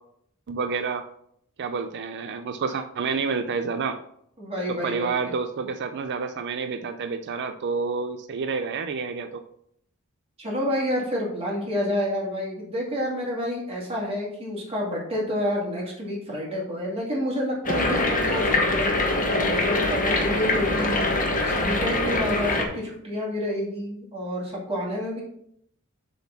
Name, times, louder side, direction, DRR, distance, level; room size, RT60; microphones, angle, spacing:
voice 1, 0.5-1.0 1.6-4.0 4.7-9.4, right 5 dB, 55° right, 7 dB, 0.4 m, -29 dB
voice 2, 4.4-5.3 10.4-25.2, left 1 dB, 25° right, -3 dB, 2.4 m, -29 dB
sound 1, 17.6-22.7, left 2 dB, 40° left, 1.4 m, -23 dB
6.9 x 3.9 x 5.8 m, 0.71 s
head